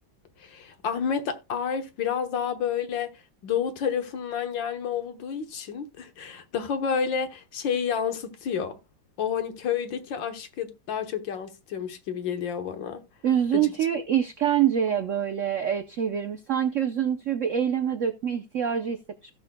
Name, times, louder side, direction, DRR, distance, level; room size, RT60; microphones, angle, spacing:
voice 1, 0.4-3.1 3.4-8.8 9.2-13.0 13.5-13.7, left 7 dB, 70° left, 1.8 m, -30 dB
voice 2, 13.2-19.3, right 9 dB, 75° right, 0.7 m, -25 dB
16.5 x 6.4 x 2.2 m
omnidirectional pair, 2.2 m